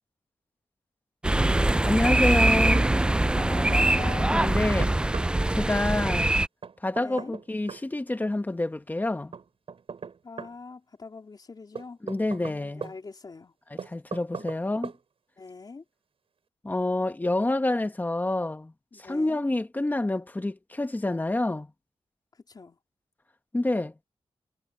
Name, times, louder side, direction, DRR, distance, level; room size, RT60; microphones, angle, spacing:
sound 1, 1.2-6.5, right 1 dB, 10° right, 0.3 m, -23 dB
Knock, 1.7-2.5 2.8-2.9 4.1-5.3 6.6-7.9 9.3-10.6 11.8-13.0 13.8-14.6 14.8-15.0, right 6 dB, 65° right, 7.0 m, -39 dB
voice 1, 1.8-2.9 4.3-4.9 5.5-6.3 6.8-9.3 12.0-12.9 13.7-14.9 16.6-18.7 19.0-21.7 23.5-23.9, left 2 dB, 15° left, 1.4 m, -27 dB
voice 2, 3.3-4.6 7.0-7.3 10.2-13.5 14.4-14.5 15.4-15.8 18.9-19.4 22.5-22.8, left 4 dB, 40° left, 3.6 m, -42 dB
wide cardioid pair, 105°, 10 cm